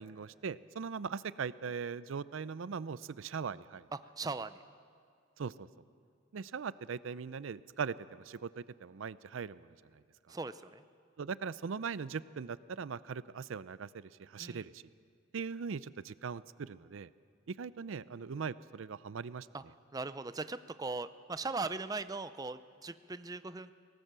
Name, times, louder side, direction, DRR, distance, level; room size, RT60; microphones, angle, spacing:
voice 1, 0.0-3.9 5.4-5.7 6.3-9.8 11.2-14.8 15.3-17.1 17.5-19.5, right 6 dB, 75° right, 17 dB, 0.5 m, -40 dB
voice 2, 3.9-4.6 10.3-10.8 14.4-14.7 19.5-19.6 19.9-23.7, right 3 dB, 20° right, 12 dB, 0.4 m, -39 dB
23.5 x 18.5 x 6.8 m, 2.3 s
head